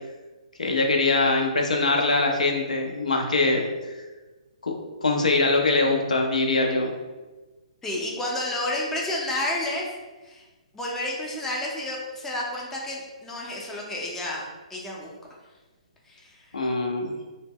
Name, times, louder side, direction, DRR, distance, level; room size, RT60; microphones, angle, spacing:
voice 1, 0.6-3.7 4.6-4.7 5.0-6.9 16.5-17.1, left 3 dB, 90° left, 2 dB, 0.5 m, -22 dB
voice 2, 7.8-9.9 10.2-10.4 10.7-14.4 14.7-15.1 16.1-16.4, left 1 dB, 10° left, -3 dB, 0.4 m, -30 dB
2.1 x 2.0 x 3.5 m, 1.2 s
hypercardioid pair, 145°, 4 cm